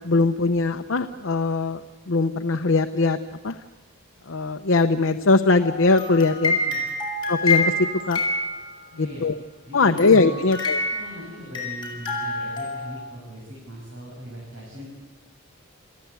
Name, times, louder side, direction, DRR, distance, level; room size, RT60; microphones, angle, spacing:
voice 1, 0.0-1.8 2.1-3.5 4.3-6.6 7.3-8.2 9.0-9.3 9.7-10.8, left 3 dB, 65° left, 6 dB, 0.8 m, -21 dB
sound 1, 5.6-9.0 10.0-11.2 11.5-13.0, left 2 dB, 25° left, 6.5 m, -27 dB
voice 2, 6.3-6.8 8.9-9.2 9.6-10.4 10.9-14.9, equal, 75° right, -3 dB, 6.7 m, -40 dB
29.0 x 15.0 x 8.2 m, 1.3 s
head